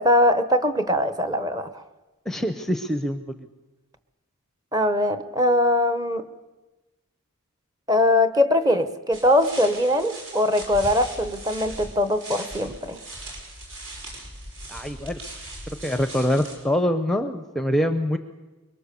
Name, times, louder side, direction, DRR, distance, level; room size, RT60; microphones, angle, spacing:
voice 1, 0.0-1.8 4.7-6.3 7.9-13.0, left 1 dB, 15° right, 10 dB, 1.0 m, -21 dB
voice 2, 2.3-3.2 14.7-15.2 15.8-18.2, equal, ahead, 8 dB, 0.7 m, -24 dB
sound 1, 9.1-16.6, right 1 dB, 65° right, 5.5 m, -39 dB
24.5 x 22.5 x 6.9 m, 1.1 s
head